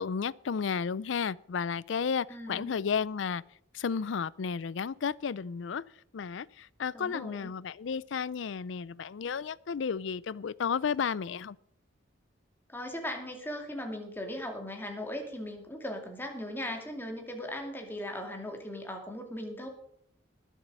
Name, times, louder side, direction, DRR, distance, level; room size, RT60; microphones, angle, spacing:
voice 1, 0.0-3.4 3.7-5.8 6.1-11.6, left 6 dB, 70° left, 0.4 m, -33 dB
voice 2, 2.3-2.7 6.9-7.5 12.7-19.7, left 1 dB, 10° left, 2.3 m, -38 dB
20.0 x 7.4 x 5.4 m
head